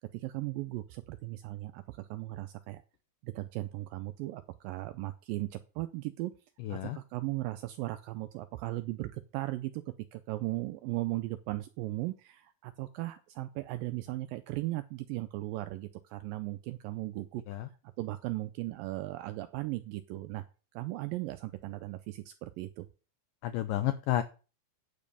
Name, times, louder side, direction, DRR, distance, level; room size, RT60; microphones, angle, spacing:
voice 1, 0.0-2.8 3.2-6.3 6.7-9.8 10.1-17.4 18.0-20.4 20.7-22.9, right 18 dB, 90° right, 11 dB, 2.0 m, -37 dB
voice 2, 6.6-7.0 17.5-17.7 23.4-24.2, left 13 dB, 90° left, 10 dB, 1.9 m, -31 dB
9.6 x 5.2 x 6.8 m, 0.34 s
omnidirectional pair, 4.6 m